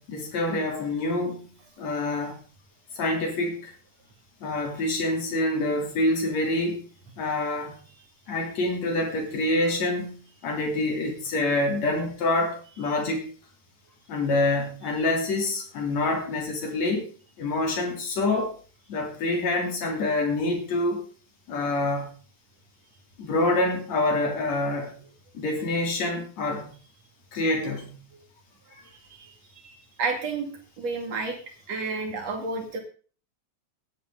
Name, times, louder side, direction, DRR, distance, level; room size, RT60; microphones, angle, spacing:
voice 1, 0.0-1.5 1.8-2.4 2.9-3.7 4.4-6.8 7.2-7.8 8.3-13.3 14.1-17.1 17.4-18.6 18.9-21.0 21.5-22.1 23.2-25.0 25.3-26.7 27.3-28.0 28.7-28.8, left 2 dB, 65° left, 1 dB, 4.4 m, -26 dB
voice 2, 30.0-30.5 30.8-31.4 31.7-32.8, right 4 dB, 60° right, 2 dB, 3.6 m, -30 dB
17.0 x 10.5 x 4.0 m, 0.39 s
omnidirectional pair, 3.4 m